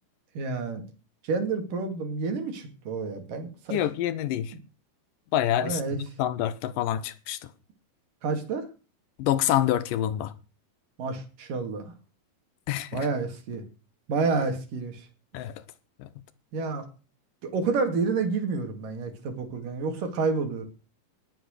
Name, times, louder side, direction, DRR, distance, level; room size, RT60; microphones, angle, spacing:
voice 1, 0.4-0.8 1.2-3.8 5.6-6.0 8.2-8.7 11.0-11.9 12.9-13.6 14.1-15.1 16.5-16.9 17.4-20.7, right 4 dB, 70° right, 4.1 m, -29 dB
voice 2, 3.7-4.5 5.3-7.4 9.2-10.3 12.7-13.1 15.3-15.6 16.0-16.1, left 12 dB, 80° left, 2.5 m, -27 dB
20.0 x 8.1 x 6.5 m
omnidirectional pair, 3.9 m